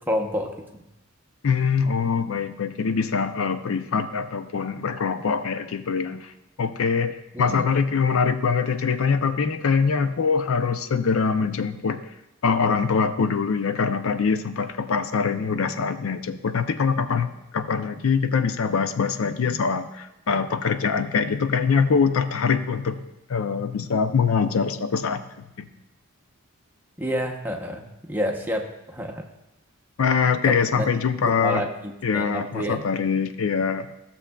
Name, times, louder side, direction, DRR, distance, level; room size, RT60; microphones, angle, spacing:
voice 1, 0.1-0.8 7.3-7.7 27.0-29.2 30.4-30.9 31.3-32.8, equal, 10° right, 2 dB, 0.7 m, -29 dB
voice 2, 1.4-6.3 6.6-12.0 12.4-25.2 25.6-25.7 30.0-31.7 32.0-33.9, left 5 dB, 80° left, 10 dB, 0.5 m, -23 dB
15.0 x 6.9 x 2.3 m, 0.90 s
head